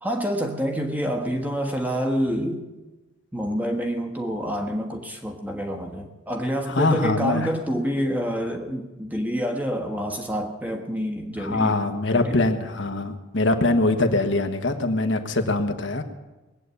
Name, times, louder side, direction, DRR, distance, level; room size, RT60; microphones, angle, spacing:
voice 1, 0.0-2.6 3.3-11.8 12.1-12.4, equal, 10° right, 2 dB, 1.4 m, -27 dB
voice 2, 6.7-7.5 11.4-16.0, left 2 dB, 70° left, 5 dB, 1.3 m, -23 dB
20.0 x 8.4 x 8.3 m, 1.1 s
head